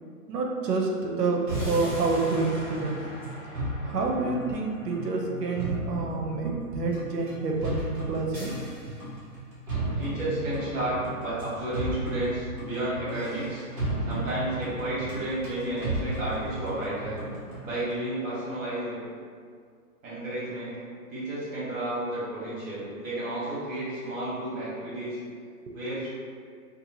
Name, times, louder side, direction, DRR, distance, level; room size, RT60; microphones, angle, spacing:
voice 1, 0.3-3.0 3.8-8.6 25.6-25.7, right 3 dB, 85° right, 0 dB, 0.6 m, -28 dB
sound 1, 1.5-17.8, right 1 dB, 35° right, 0.9 m, -35 dB
voice 2, 10.0-13.6 14.1-17.2 17.6-19.0 20.0-20.8 21.1-25.2 25.7-26.1, right 1 dB, 55° right, -10 dB, 1.2 m, -32 dB
2.7 x 2.3 x 2.7 m, 2.1 s
hypercardioid pair, 175°, 47 cm